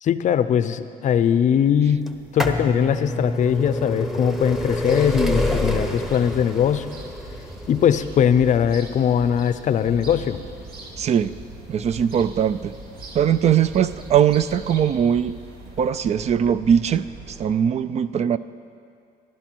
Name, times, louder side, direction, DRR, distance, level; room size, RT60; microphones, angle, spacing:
voice 1, 0.0-2.1 2.3-6.9 7.7-10.4, left 8 dB, 45° left, 13 dB, 0.5 m, -20 dB
sound 1, 2.1-13.7 14.5-14.6 15.6-15.7 15.9-16.0, left 1 dB, ahead, 0.9 m, -28 dB
sound 2, 4.5-17.5, right 2 dB, 65° right, 2.3 m, -41 dB
voice 2, 11.0-11.3 11.7-12.7 13.2-15.3 15.8-17.1 17.4-18.4, right 8 dB, 40° right, 15 dB, 0.4 m, -20 dB
15.5 x 11.5 x 4.6 m, 2.4 s
cardioid pair, 110°, 17 cm